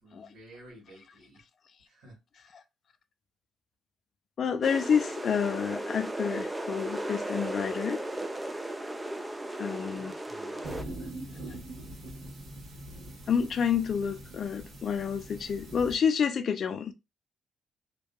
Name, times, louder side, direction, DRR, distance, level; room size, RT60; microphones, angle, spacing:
voice 1, 0.0-1.4 1.9-2.2 9.9-11.4, right 1 dB, 85° right, 1.4 m, -54 dB
voice 2, 4.4-8.0 9.6-10.2 13.3-16.9, left 7 dB, 55° left, 0.4 m, -29 dB
sound 1, 4.6-10.8, right 1 dB, 15° right, 0.4 m, -36 dB
sound 2, 10.6-16.0, right 1 dB, 65° right, 1.2 m, -43 dB
2.7 x 2.3 x 2.2 m
cardioid pair, 90°, 0 cm